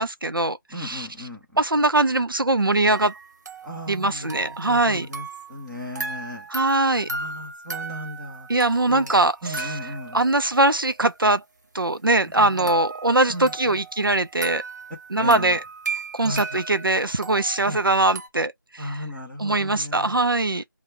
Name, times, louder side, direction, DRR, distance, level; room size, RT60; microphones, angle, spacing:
voice 1, 0.0-1.1 1.6-3.1 3.9-5.1 6.5-7.1 8.5-9.7 10.1-11.4 11.7-14.6 15.1-15.6 16.1-19.0 19.4-20.6, right 2 dB, 85° right, 0.6 m, -21 dB
voice 2, 0.7-1.6 3.6-6.5 7.1-8.5 8.9-9.1 9.4-10.2 12.4-12.7 13.3-13.8 15.2-15.6 16.2-16.6 17.7-17.8 18.8-20.2, left 1 dB, 5° right, 1.0 m, -36 dB
sound 1, 2.9-5.7 5.9-10.6 12.6-18.3, right 4 dB, 55° right, 1.1 m, -36 dB
4.2 x 2.3 x 3.5 m
figure-of-eight pair, 165°, 11 cm